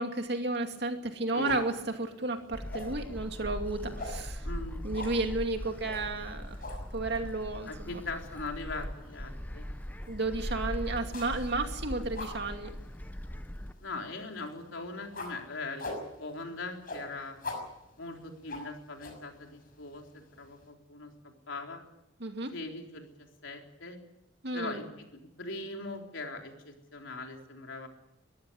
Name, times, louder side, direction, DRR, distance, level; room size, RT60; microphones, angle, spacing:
voice 1, 0.0-1.7 2.0-4.5 4.8-6.6 6.9-7.9 10.1-12.7 22.2-22.5 24.4-24.8, right 2 dB, 55° right, 5 dB, 2.5 m, -32 dB
voice 2, 1.3-1.6 4.4-4.9 7.7-9.7 13.8-15.9 16.2-17.4 18.0-21.8 22.5-24.0 24.5-27.9, left 3 dB, 75° left, 2 dB, 3.9 m, -41 dB
sound 1, 1.5-20.7, left 2 dB, 45° left, 6.4 m, -47 dB
Gull seagull, 2.5-13.7, equal, 10° left, 0.8 m, -40 dB
23.0 x 14.5 x 9.9 m, 0.90 s
head